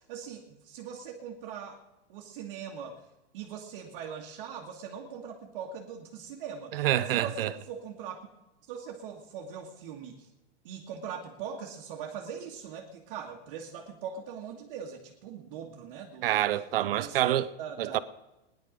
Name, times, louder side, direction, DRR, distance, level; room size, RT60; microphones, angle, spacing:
voice 1, 0.0-1.8 2.1-3.0 3.3-8.2 8.7-10.3 10.6-16.4 16.8-17.3 17.6-18.0, right 7 dB, 40° right, 1.8 m, -41 dB
voice 2, 6.7-7.5 16.2-17.5 17.8-18.0, right 13 dB, 60° right, 0.8 m, -27 dB
18.0 x 10.5 x 5.2 m
supercardioid pair, 170°, 33 cm